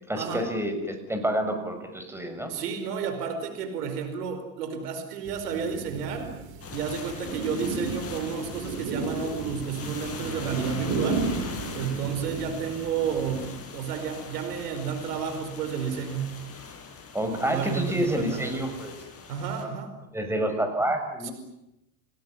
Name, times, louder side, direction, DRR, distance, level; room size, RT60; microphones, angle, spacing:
voice 1, 0.1-2.5 11.7-12.0 17.1-18.9 20.1-21.3, right 1 dB, 5° right, 6 dB, 6.6 m, -28 dB
voice 2, 2.5-6.3 6.7-11.2 11.7-13.4 13.7-16.4 17.5-18.7 19.3-19.9 21.2-21.3, right 6 dB, 90° right, 8 dB, 5.1 m, -31 dB
sound 1, 5.2-13.5, right 4 dB, 60° right, 4.7 m, -34 dB
sound 2, 6.6-19.6, left 5 dB, 30° left, 6.8 m, -41 dB
30.0 x 17.5 x 9.9 m, 0.89 s
supercardioid pair, 105°, 46 cm